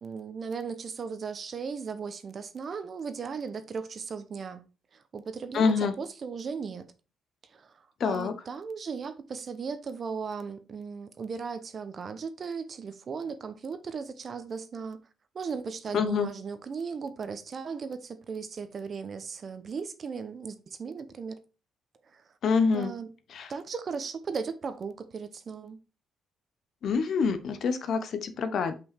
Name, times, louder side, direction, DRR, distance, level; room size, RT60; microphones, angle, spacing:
voice 1, 0.0-4.6 4.9-6.9 7.5-15.0 15.3-21.4 22.1-22.2 22.7-23.1 23.5-25.8, right 5 dB, 45° right, 0.9 m, -37 dB
voice 2, 5.5-6.0 8.0-8.3 15.9-16.3 22.4-22.9 23.3-23.5 26.8-28.8, left 5 dB, 65° left, 1.0 m, -26 dB
5.6 x 5.5 x 4.3 m
cardioid pair, 90°, 0 cm